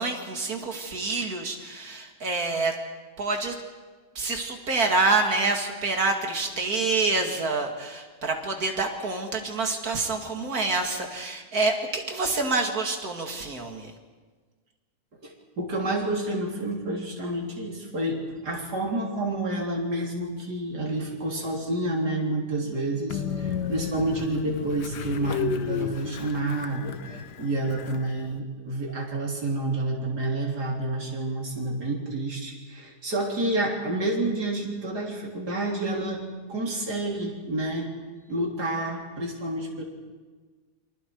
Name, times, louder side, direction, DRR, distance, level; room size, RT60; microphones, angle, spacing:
voice 1, 0.0-2.7 3.2-3.6 4.1-13.9, right 3 dB, 65° right, 3 dB, 2.9 m, -27 dB
voice 2, 15.2-36.2 36.5-37.9 38.3-39.8, right 2 dB, 80° right, -2 dB, 4.1 m, -29 dB
Train, 23.1-28.4, left 8 dB, 90° left, 1.5 m, -33 dB
29.0 x 25.5 x 4.8 m, 1.4 s
omnidirectional pair, 1.7 m